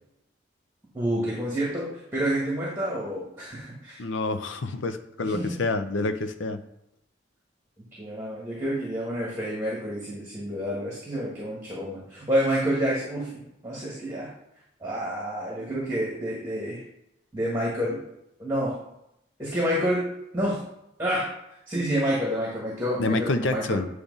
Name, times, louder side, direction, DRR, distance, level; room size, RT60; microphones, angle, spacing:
voice 1, 0.9-4.0 5.2-5.6 8.0-14.3 14.8-16.8 17.3-18.0 18.4-18.7 19.4-20.1 20.3-20.6 21.0-21.3 21.7-23.8, equal, 15° right, -5 dB, 1.6 m, -28 dB
voice 2, 4.0-6.6 23.0-23.9, left 2 dB, 85° left, 9 dB, 0.7 m, -27 dB
8.8 x 3.3 x 5.3 m, 0.83 s
head